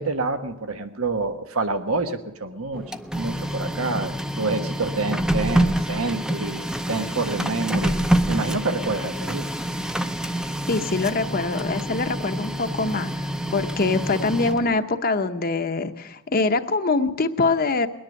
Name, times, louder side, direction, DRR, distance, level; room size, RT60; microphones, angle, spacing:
voice 1, 0.0-2.8 3.1-8.0 8.3-9.5, right 3 dB, 80° right, 8 dB, 1.2 m, -27 dB
Printer, 2.7-14.8, right 1 dB, 5° right, 0.6 m, -27 dB
voice 2, 10.7-17.9, left 3 dB, 45° left, 7 dB, 0.8 m, -24 dB
21.0 x 10.0 x 6.5 m, 1.0 s
head